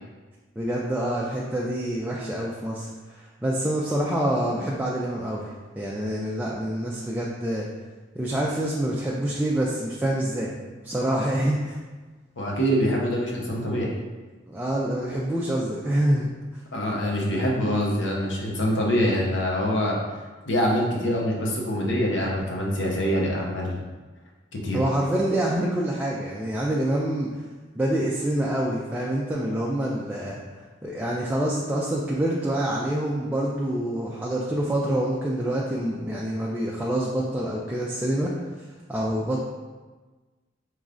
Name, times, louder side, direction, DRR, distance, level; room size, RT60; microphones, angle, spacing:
voice 1, 0.6-5.5 5.8-7.7 8.1-10.5 10.8-11.8 14.5-16.3 24.7-27.4 27.8-30.4 30.8-38.3 38.9-39.4, right 1 dB, 10° right, -4 dB, 0.3 m, -26 dB
voice 2, 12.4-13.9 16.7-20.0 20.5-23.8 24.6-24.8, equal, 75° left, -2 dB, 0.8 m, -24 dB
4.9 x 3.1 x 2.5 m, 1.3 s
head